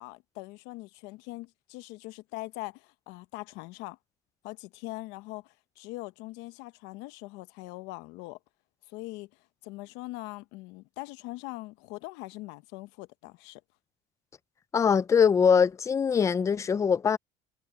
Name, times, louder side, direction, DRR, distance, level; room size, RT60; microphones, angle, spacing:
voice 1, 0.0-4.0 4.4-8.4 8.9-9.3 9.6-13.6, left 21 dB, 80° left, 0.8 m, -42 dB
voice 2, 14.7-17.2, left 6 dB, 15° left, 0.4 m, -22 dB
cardioid pair, 150°, 18 cm